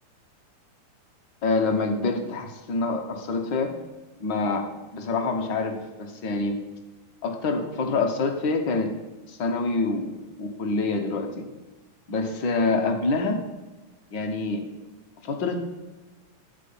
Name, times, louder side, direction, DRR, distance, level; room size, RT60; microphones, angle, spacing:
voice 1, 1.4-3.7 4.2-6.6 7.2-8.9 9.3-11.5 12.1-13.4 14.1-14.6 15.2-15.7, left 3 dB, 55° left, 4 dB, 1.3 m, -26 dB
13.5 x 4.8 x 8.7 m, 1.2 s
omnidirectional pair, 3.7 m